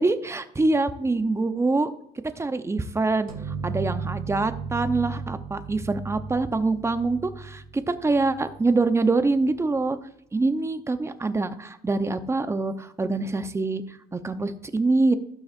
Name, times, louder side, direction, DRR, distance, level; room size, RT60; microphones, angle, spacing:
voice 1, 0.0-1.9 2.4-10.0 10.3-15.2, right 3 dB, 15° right, 10 dB, 0.7 m, -25 dB
sound 1, 3.3-8.8, right 5 dB, 55° right, 2.1 m, -35 dB
16.5 x 6.0 x 2.5 m, 0.77 s
cardioid pair, 110°, 17 cm